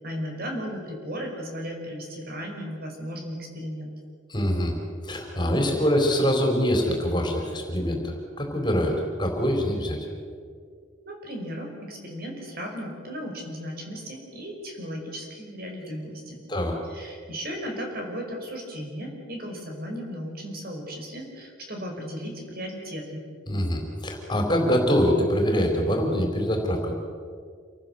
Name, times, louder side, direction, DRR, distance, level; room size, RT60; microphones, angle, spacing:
voice 1, 0.0-3.9 11.1-16.4 16.9-23.2, equal, 50° right, 2 dB, 5.3 m, -35 dB
voice 2, 4.3-4.7 5.0-8.9 9.2-10.0 16.5-16.7 23.5-26.9, equal, 25° left, 2 dB, 4.2 m, -24 dB
27.5 x 18.5 x 8.0 m, 2.1 s
head